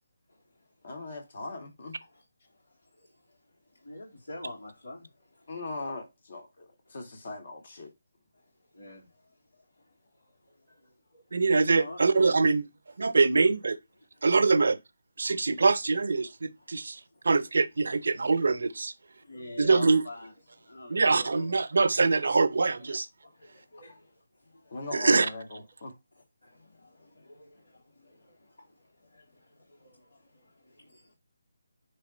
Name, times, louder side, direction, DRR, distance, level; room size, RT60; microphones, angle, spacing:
voice 1, 0.3-1.0 2.1-5.5 6.9-7.0 8.3-11.3 11.6-12.0 13.0-13.2 14.0-14.3 15.3-15.6 16.6-17.2 17.9-18.4 19.2-21.6 22.8-22.9 23.2-24.8 26.4-31.1, left 2 dB, 75° left, 3.4 m, -48 dB
voice 2, 0.8-2.0 5.5-7.9 24.7-25.9, left 3 dB, 55° left, 2.6 m, -40 dB
voice 3, 11.3-12.6 13.0-13.8 14.2-14.8 15.2-17.0 17.2-18.9 19.6-20.0 20.9-23.1 24.9-25.3, right 4 dB, 65° right, 0.8 m, -24 dB
9.7 x 3.6 x 3.1 m
figure-of-eight pair, 155°, 0 cm